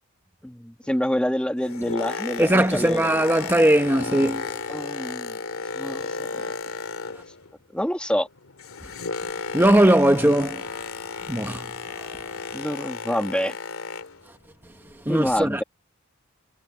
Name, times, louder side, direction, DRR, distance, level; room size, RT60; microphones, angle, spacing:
voice 1, 0.4-3.1 4.7-5.4 5.7-6.5 7.7-8.3 12.5-13.5 15.1-15.6, equal, 5° left, 1.4 m, -27 dB
Boat Water vehicle, 1.4-7.5 7.8-14.3 14.9-15.0, left 5 dB, 85° left, 2.3 m, -34 dB
voice 2, 2.4-4.6 9.5-10.6 11.3-12.1 15.0-15.6, right 1 dB, 10° right, 1.1 m, -20 dB
head